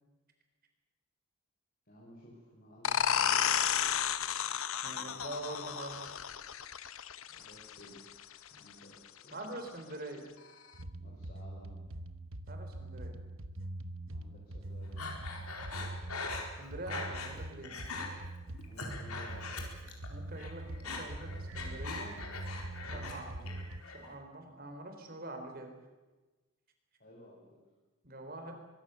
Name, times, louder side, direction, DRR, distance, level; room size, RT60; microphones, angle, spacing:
voice 1, 1.9-3.9 4.9-5.2 7.3-8.2 8.5-9.0 9.2-9.9 11.0-11.8 14.1-15.1 18.6-19.5 22.9-23.7 27.0-27.4, equal, 45° left, -4 dB, 5.9 m, -56 dB
sound 1, 2.8-8.2, left 8 dB, 70° left, 1.0 m, -32 dB
voice 2, 4.8-6.0 9.3-10.3 12.5-13.2 16.6-17.8 20.1-22.2 22.8-23.3 23.9-25.7 28.0-28.5, right 2 dB, 40° right, 5 dB, 4.0 m, -44 dB
sound 2, 10.7-23.8, right 1 dB, 65° right, 1.2 m, -43 dB
Breathing, 15.0-17.4 17.6-18.1 18.5-20.1 20.3-23.2 23.5-24.1, left 3 dB, 85° left, 4.4 m, -41 dB
23.5 x 22.0 x 7.0 m, 1.2 s
head